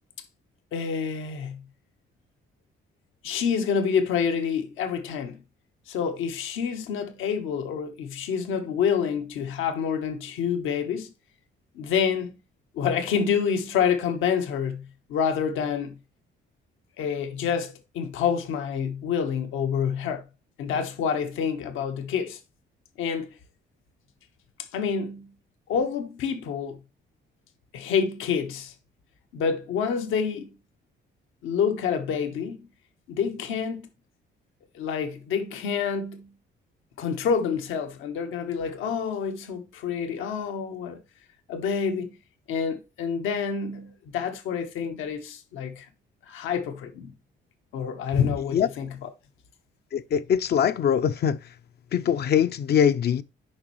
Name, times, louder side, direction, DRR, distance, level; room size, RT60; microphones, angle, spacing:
voice 1, 0.7-1.6 3.2-5.4 5.9-11.1 11.7-12.4 12.7-16.0 17.0-20.2 20.6-22.4 23.0-23.3 24.7-25.3 25.7-26.8 27.7-28.7 29.3-30.5 31.4-32.6 33.1-33.9 34.7-36.3 37.0-41.0 41.5-42.1 42.5-45.9 46.3-47.1 47.7-49.1, left 7 dB, 90° left, 1.1 m, -27 dB
voice 2, 49.9-51.4 51.9-53.2, left 8 dB, 55° left, 0.5 m, -22 dB
8.7 x 5.3 x 3.1 m
cardioid pair, 90°, 20 cm